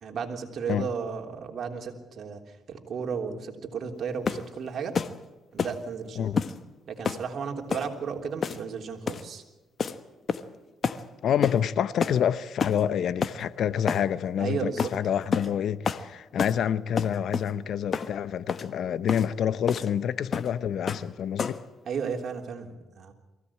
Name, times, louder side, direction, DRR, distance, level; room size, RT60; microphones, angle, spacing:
voice 1, 0.0-2.4 2.7-5.0 5.5-6.4 6.9-9.4 14.4-14.9 21.9-23.1, right 6 dB, 60° right, 3.4 m, -34 dB
sound 1, 4.3-4.5 5.0-5.2 5.6-5.8 6.4-6.6 7.1-7.3 7.7-7.9 8.4-8.7 9.1-9.3 9.8-10.0 10.3-10.6 10.8-11.0 11.4-11.6 12.0-12.2 12.6-12.8 13.2-13.4 13.9-14.1 14.8-15.0 15.3-15.5 15.9-16.1 16.4-16.6 17.0-17.5 17.9-18.1 18.5-18.7 19.1-19.3 19.7-19.9 20.3-20.5 20.9-21.1 21.4-21.7, left 6 dB, 45° left, 1.2 m, -29 dB
voice 2, 11.2-21.6, left 9 dB, 65° left, 0.8 m, -27 dB
23.0 x 16.5 x 8.6 m
cardioid pair, 90°, 0 cm